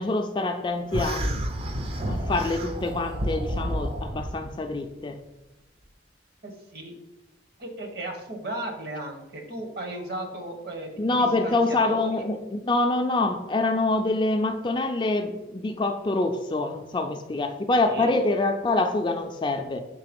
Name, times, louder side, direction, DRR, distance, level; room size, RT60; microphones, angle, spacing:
voice 1, 0.0-1.4 2.1-5.2 11.0-19.8, left 2 dB, 25° left, 5 dB, 0.3 m, -25 dB
sound 1, 0.9-4.3, equal, 30° right, 0.5 m, -30 dB
voice 2, 6.4-6.9 7.6-11.0 11.4-12.2 17.8-18.2, right 1 dB, 55° right, 3 dB, 1.2 m, -35 dB
6.6 x 3.2 x 5.2 m, 1.0 s
head